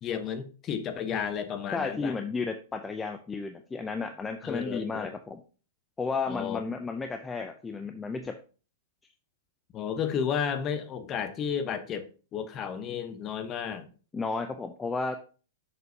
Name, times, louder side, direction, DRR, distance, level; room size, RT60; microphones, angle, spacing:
voice 1, 0.0-2.2 4.4-5.1 6.3-6.6 9.7-13.9, left 7 dB, 30° left, 10 dB, 1.0 m, -32 dB
voice 2, 1.7-5.4 6.0-8.4 14.1-15.2, left 4 dB, 15° left, 6 dB, 0.6 m, -33 dB
6.9 x 6.2 x 2.8 m, 0.37 s
hypercardioid pair, 130°, 0 cm